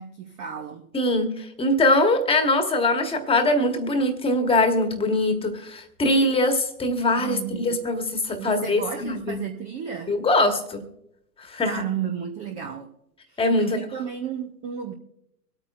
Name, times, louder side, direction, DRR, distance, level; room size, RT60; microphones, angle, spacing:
voice 1, 0.0-0.9 7.2-7.8 8.4-10.2 11.6-12.9 13.3-14.9, right 8 dB, 15° right, 5 dB, 0.4 m, -33 dB
voice 2, 0.9-9.4 10.1-10.8 11.5-11.7 13.4-13.8, left 2 dB, 10° left, 7 dB, 1.3 m, -22 dB
24.5 x 8.9 x 2.5 m, 0.80 s
hypercardioid pair, 110°, 48 cm